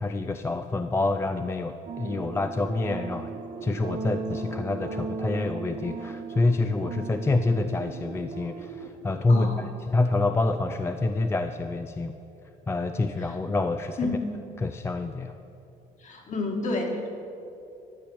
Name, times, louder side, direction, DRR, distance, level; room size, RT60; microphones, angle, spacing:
voice 1, 0.0-3.3 3.6-9.5 9.9-12.1 12.7-14.0 14.6-15.3, left 2 dB, 15° left, 8 dB, 0.4 m, -27 dB
sound 1, 1.9-8.9, right 4 dB, 45° right, 0.9 m, -36 dB
voice 2, 9.3-9.6 14.0-14.3 16.0-17.1, left 2 dB, 45° left, 1 dB, 1.8 m, -29 dB
12.0 x 5.0 x 8.5 m, 2.8 s
cardioid pair, 110°, 17 cm